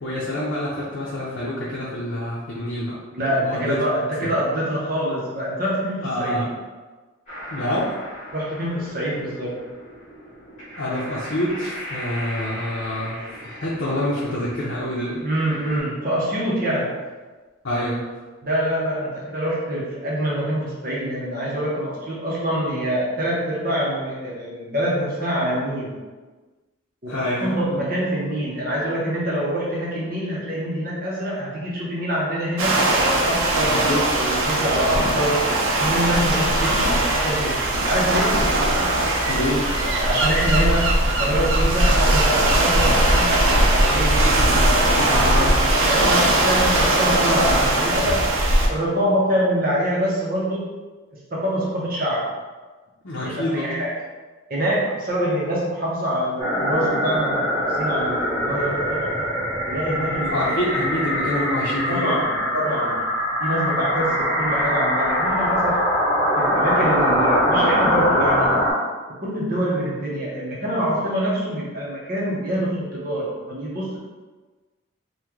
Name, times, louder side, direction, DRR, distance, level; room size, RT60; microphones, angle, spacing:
voice 1, 0.0-3.0 3.4-3.8 4.2-4.3 6.0-6.5 7.5-8.0 10.8-15.2 17.6-18.1 27.1-27.8 33.7-34.1 36.7-36.9 38.3-38.7 39.3-39.7 45.0-45.6 53.0-53.8 60.2-62.2, left 1 dB, 65° left, -7 dB, 0.6 m, -27 dB
voice 2, 3.1-6.4 8.3-9.6 15.2-17.0 18.4-26.0 27.0-37.6 37.8-38.4 40.0-45.3 45.8-48.2 48.7-50.7 51.3-52.3 53.2-53.9 54.5-59.3 59.7-60.5 61.9-63.0 63.4-66.0 66.4-68.6 69.1-74.0, equal, 45° right, -5 dB, 0.7 m, -25 dB
sound 1, 7.3-15.8, equal, 35° left, 1.0 m, -38 dB
sound 2, 32.6-48.7, right 1 dB, 75° right, 0.6 m, -19 dB
sound 3, 56.4-68.7, equal, 15° left, 1.0 m, -22 dB
2.9 x 2.2 x 3.6 m, 1.3 s
head